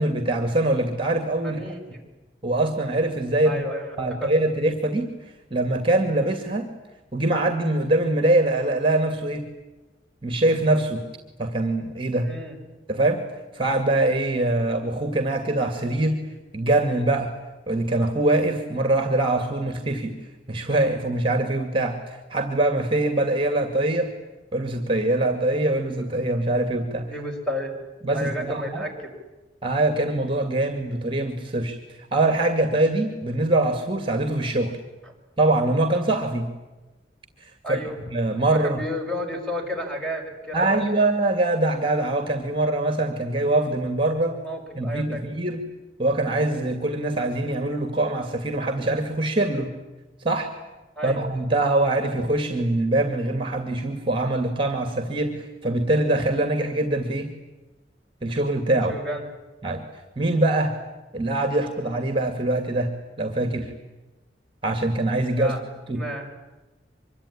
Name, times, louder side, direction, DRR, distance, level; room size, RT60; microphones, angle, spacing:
voice 1, 0.0-1.7 2.4-3.6 4.0-5.1 5.5-6.7 7.1-9.5 10.2-11.0 11.4-12.3 12.9-13.2 13.5-16.2 16.5-17.3 17.7-20.2 20.5-24.1 24.5-27.1 28.0-28.8 29.6-34.8 35.4-36.5 37.4-37.8 38.1-38.8 40.5-44.4 44.8-45.6 46.0-49.8 50.2-50.5 51.0-57.3 58.2-58.9 59.6-59.8 60.2-60.7 61.1-62.9 63.2-63.7 64.6-65.6 65.9-66.0, right 2 dB, 30° right, 7 dB, 2.3 m, -23 dB
voice 2, 1.4-2.1 3.4-4.3 12.2-12.6 27.1-27.7 28.1-29.1 35.0-35.1 37.6-38.0 38.5-40.8 44.4-45.2 51.0-51.2 58.9-59.2 65.3-65.6 65.9-66.3, equal, 5° left, 2 dB, 5.9 m, -32 dB
25.0 x 23.5 x 10.0 m, 1.1 s
head